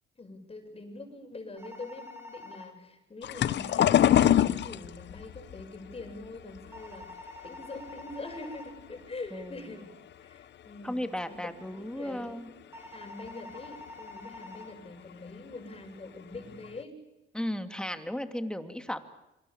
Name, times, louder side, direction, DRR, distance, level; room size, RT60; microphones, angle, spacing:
voice 1, 0.2-9.9 10.2-11.0 11.3-16.9, left 2 dB, 30° left, 5 dB, 7.5 m, -44 dB
sound 1, 1.6-2.7 6.7-8.7 12.7-14.7, left 2 dB, 10° right, 4.4 m, -46 dB
sound 2, 3.2-8.3 8.7-9.6 10.1-10.4 10.7-10.8 12.0-12.1 12.6-12.7 13.3-13.4 13.5-13.9 15.1-15.3 15.8-15.9 16.3-16.8, left 11 dB, 60° left, 0.9 m, -26 dB
voice 2, 9.3-9.6 10.8-12.5 17.3-19.0, left 1 dB, 5° left, 8 dB, 2.7 m, -35 dB
27.5 x 26.0 x 7.3 m, 0.94 s
cardioid pair, 90°, 20 cm